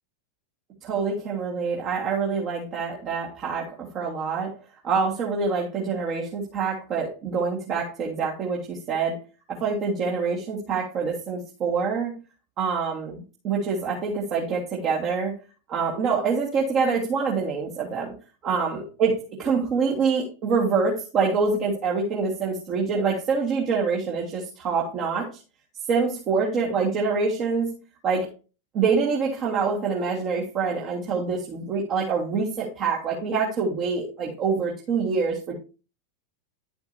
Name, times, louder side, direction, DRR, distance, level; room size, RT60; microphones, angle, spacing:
voice 1, 0.8-4.5 4.8-9.2 9.5-12.1 12.6-15.3 15.7-18.1 18.4-25.4 25.9-27.7 28.0-28.3 28.7-35.5, right 5 dB, 35° right, -2 dB, 1.7 m, -26 dB
10.5 x 7.8 x 2.8 m, 0.34 s
figure-of-eight pair, 90°, 0 cm